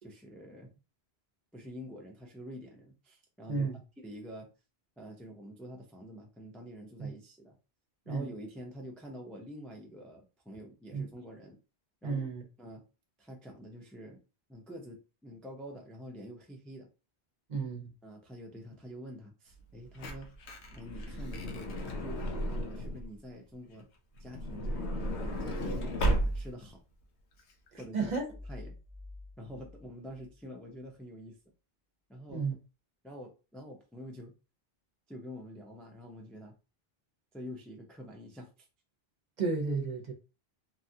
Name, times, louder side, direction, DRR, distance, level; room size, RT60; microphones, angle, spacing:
voice 1, 0.0-0.7 1.5-3.7 4.0-4.5 5.0-7.5 8.1-11.6 12.0-12.2 12.6-12.8 13.2-14.2 14.5-16.9 18.0-20.3 20.7-23.9 24.2-26.8 27.8-28.1 28.5-28.8 29.4-31.4 32.1-32.4 33.0-34.3 35.1-36.5 37.3-38.7, equal, ahead, 0.3 m, -47 dB
voice 2, 3.5-3.8 7.0-7.1 8.1-8.3 10.9-11.1 12.0-12.4 17.5-17.9 27.7-28.3 32.3-32.5 39.4-40.1, right 4 dB, 50° right, 0.7 m, -32 dB
Truck / Door, 19.6-23.1 24.2-26.7 27.4-27.5 27.7-27.8, right 1 dB, 85° left, 0.9 m, -34 dB
sound 1, 28.0-30.9, left 2 dB, 30° left, 0.8 m, -49 dB
2.9 x 2.4 x 2.7 m
omnidirectional pair, 1.1 m